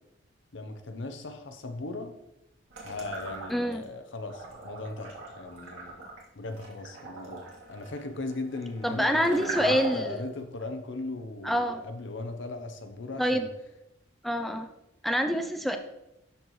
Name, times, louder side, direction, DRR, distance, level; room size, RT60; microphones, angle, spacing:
voice 1, 0.5-2.2 2.8-6.1 6.3-13.5, left 2 dB, 70° left, 7 dB, 0.8 m, -38 dB
sound 1, 2.7-3.8 4.2-10.2, right 3 dB, 85° right, 2.2 m, -41 dB
voice 2, 3.5-3.8 8.8-10.0 11.4-11.8 13.2-13.4 14.2-14.7 15.0-15.8, equal, ahead, 5 dB, 0.4 m, -26 dB
12.0 x 4.4 x 3.1 m, 0.87 s
head